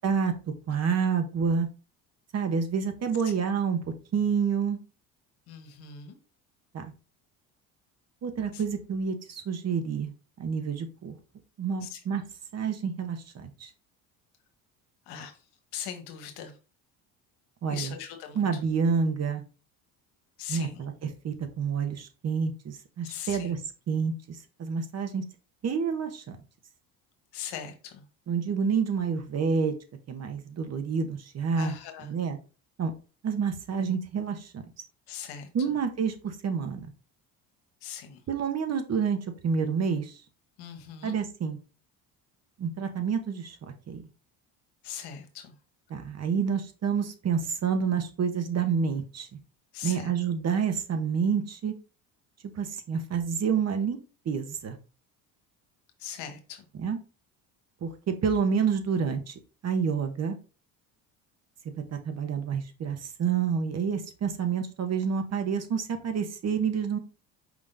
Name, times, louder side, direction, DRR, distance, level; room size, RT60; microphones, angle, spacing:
voice 1, 0.0-0.3 0.7-1.7 2.3-3.8 4.1-4.8 6.7-6.9 8.2-10.1 10.4-11.2 11.6-12.2 12.5-13.7 17.6-17.9 18.4-19.4 20.5-23.6 23.9-25.2 25.6-26.4 28.3-29.8 30.1-31.7 32.0-32.4 32.8-32.9 33.2-34.6 35.5-36.9 38.3-40.1 41.0-41.6 42.6-43.6 43.9-44.0 45.9-49.4 49.8-51.7 52.5-54.0 54.2-54.8 56.7-57.0 57.8-59.3 59.6-60.4 61.9-67.0, right 6 dB, 40° right, 8 dB, 0.9 m, -28 dB
voice 2, 5.5-6.1 8.5-8.6 11.8-12.0 15.1-15.4 15.7-16.5 17.7-18.5 20.4-20.9 23.0-23.6 27.3-28.0 31.5-32.1 35.1-35.7 37.8-38.2 40.6-41.2 44.8-45.5 49.7-50.1 56.0-56.7, left 8 dB, 80° left, 6 dB, 1.1 m, -40 dB
5.0 x 3.6 x 2.6 m, 0.34 s
supercardioid pair, 90°, 39 cm